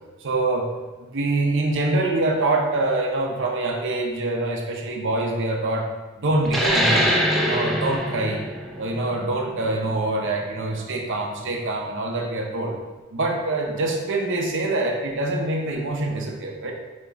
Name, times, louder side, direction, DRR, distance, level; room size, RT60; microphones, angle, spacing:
voice 1, 0.2-0.7 1.0-5.9 6.2-8.5 8.8-12.8 13.1-16.7, right 2 dB, 60° right, 1 dB, 0.7 m, -25 dB
sound 1, 6.4-11.6, equal, ahead, 0.5 m, -24 dB
5.3 x 2.9 x 3.4 m, 1.2 s
head